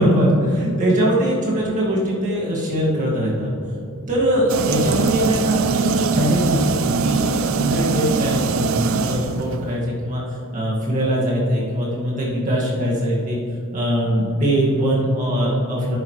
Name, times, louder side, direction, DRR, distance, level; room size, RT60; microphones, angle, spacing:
voice 1, 0.0-3.5 4.1-10.2 10.5-13.4 13.7-16.0, equal, 35° right, -5 dB, 2.0 m, -21 dB
sound 1, 4.5-9.8, right 5 dB, 65° right, 0.4 m, -22 dB
10.5 x 8.1 x 3.2 m, 2.6 s
head